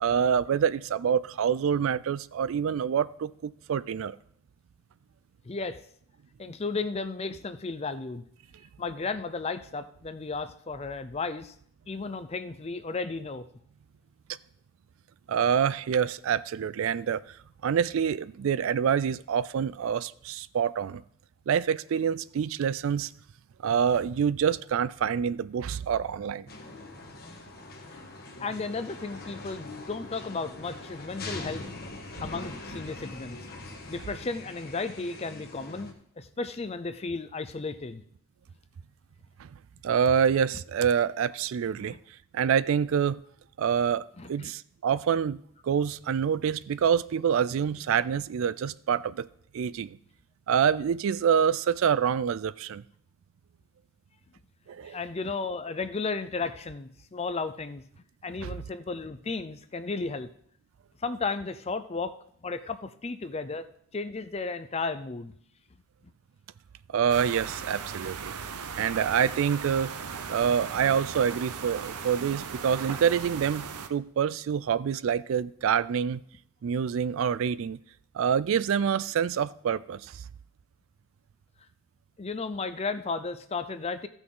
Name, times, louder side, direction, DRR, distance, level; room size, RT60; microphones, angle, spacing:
voice 1, 0.0-4.2 15.3-17.2 17.6-21.0 21.5-23.1 23.6-26.5 39.4-39.5 39.8-42.0 42.3-43.2 43.6-45.4 45.6-49.3 49.5-50.0 50.5-52.8 54.7-55.0 58.4-58.5 66.9-68.3 68.7-69.9 70.3-76.2 76.6-77.8 78.1-80.1, right 7 dB, 65° right, 0.3 m, -26 dB
voice 2, 5.4-5.8 6.4-8.2 8.8-11.5 11.9-13.5 28.4-31.6 32.2-33.4 33.9-38.0 41.8-42.0 44.2-44.5 54.8-57.8 58.2-60.3 61.0-62.1 62.4-63.6 63.9-65.3 82.2-84.1, left 4 dB, 25° left, 0.4 m, -34 dB
sound 1, 26.5-35.9, left 2 dB, 45° left, 1.3 m, -42 dB
sound 2, 67.1-73.9, right 6 dB, 90° right, 0.7 m, -38 dB
15.5 x 6.1 x 3.8 m
head